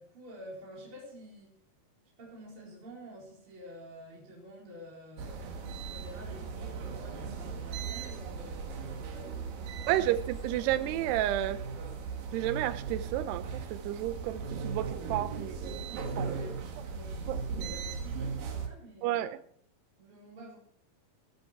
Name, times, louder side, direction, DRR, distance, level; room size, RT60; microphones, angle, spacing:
voice 1, 0.0-1.5 2.2-9.9 15.9-19.4 20.0-20.6, equal, 30° right, -4 dB, 5.1 m, -49 dB
sound 1, 5.2-18.7, right 5 dB, 65° right, 3.3 m, -38 dB
voice 2, 9.9-11.6 12.3-15.8 16.2-16.4 17.3-17.4 19.0-19.4, right 13 dB, 90° right, 11 dB, 2.8 m, -31 dB
19.5 x 9.2 x 4.6 m, 0.62 s
omnidirectional pair, 4.6 m